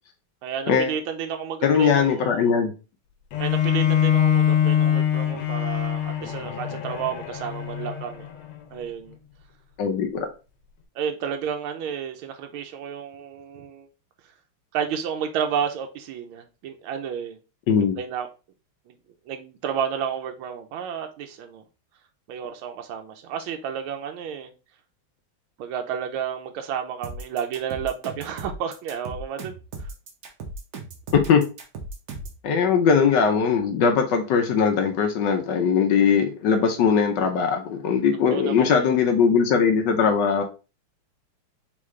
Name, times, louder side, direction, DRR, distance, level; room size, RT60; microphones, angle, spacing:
voice 1, 0.4-2.5 3.4-8.3 8.7-9.2 10.9-13.9 14.7-17.4 17.7-18.3 18.9-19.0 19.3-21.6 22.3-24.5 25.6-29.9 38.3-38.9, right 8 dB, 80° right, 1.4 m, -31 dB
voice 2, 1.6-2.7 9.8-10.3 17.7-18.0 31.1-31.4 32.4-40.4, left 6 dB, 70° left, 1.1 m, -20 dB
Bowed string instrument, 3.3-8.5, left 9 dB, 85° left, 1.5 m, -23 dB
sound 1, 27.0-32.4, right 2 dB, 55° right, 1.2 m, -37 dB
3.8 x 3.2 x 3.5 m
omnidirectional pair, 2.3 m